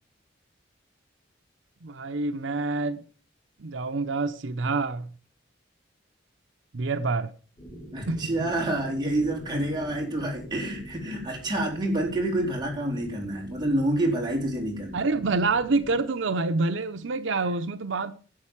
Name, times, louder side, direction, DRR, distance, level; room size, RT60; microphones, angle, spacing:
voice 1, 1.8-3.0 3.6-5.1 6.7-7.3 8.1-8.5 14.9-18.1, right 3 dB, 75° right, 0.7 m, -27 dB
sound 1, 7.6-16.0, right 1 dB, 25° left, 4.2 m, -45 dB
voice 2, 7.9-15.0, right 1 dB, 20° right, 4.1 m, -28 dB
11.0 x 7.2 x 7.3 m
head